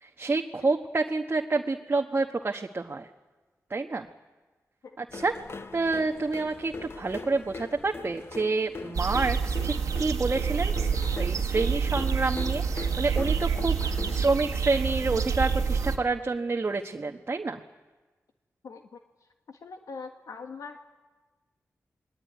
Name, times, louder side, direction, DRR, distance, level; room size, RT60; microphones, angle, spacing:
voice 1, 0.0-3.1 3.7-4.1 5.0-5.4 5.7-17.6, right 3 dB, 40° right, 3 dB, 1.3 m, -28 dB
sound 1, 5.1-14.3, left 4 dB, 45° left, 1.0 m, -41 dB
sound 2, 8.9-16.0, right 6 dB, 90° right, 1.8 m, -28 dB
voice 2, 19.5-20.9, left 4 dB, 80° left, 5 dB, 1.5 m, -42 dB
26.5 x 21.0 x 9.4 m, 1.3 s
cardioid pair, 55°, 6 cm